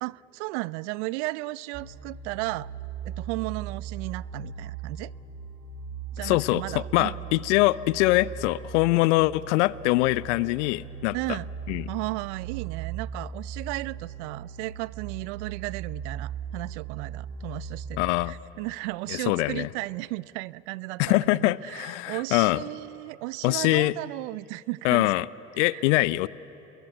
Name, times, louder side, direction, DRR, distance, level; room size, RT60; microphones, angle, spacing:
voice 1, 0.0-2.7 3.0-5.1 6.1-7.1 11.1-11.5 11.9-18.0 18.2-25.1 25.6-25.8, right 22 dB, 70° right, 22 dB, 0.6 m, -34 dB
sound 1, 1.7-18.1, right 6 dB, 45° right, 4.7 m, -39 dB
voice 2, 6.2-11.4 11.7-11.9 18.0-18.3 19.1-19.7 21.0-22.6 23.4-23.9 24.8-25.3 25.6-26.3, left 19 dB, 70° left, 19 dB, 0.7 m, -23 dB
29.0 x 22.0 x 8.3 m, 2.9 s
hypercardioid pair, 70°, 37 cm